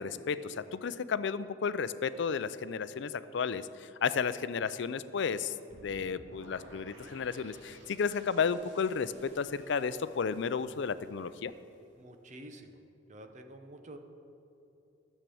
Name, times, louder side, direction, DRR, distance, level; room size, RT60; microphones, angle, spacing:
voice 1, 0.0-5.5 5.8-11.5, left 6 dB, 70° left, 14 dB, 0.4 m, -33 dB
sound 1, 5.7-11.7, right 1 dB, 75° right, 2.4 m, -56 dB
voice 2, 12.0-12.7 13.1-14.0, right 1 dB, 40° right, 6 dB, 0.9 m, -49 dB
12.0 x 7.3 x 7.0 m, 2.9 s
head